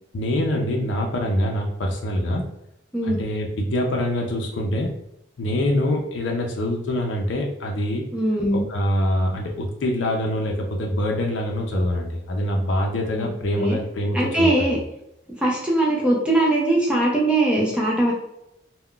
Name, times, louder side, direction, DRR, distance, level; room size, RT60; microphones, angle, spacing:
voice 1, 0.1-2.4 3.0-4.9 5.4-8.0 8.5-14.7, left 1 dB, 80° left, 1 dB, 0.5 m, -24 dB
voice 2, 8.1-8.6 13.1-13.3 13.6-13.8 14.1-14.8 15.4-18.1, right 1 dB, 5° right, -3 dB, 0.4 m, -21 dB
2.3 x 2.1 x 3.6 m, 0.82 s
head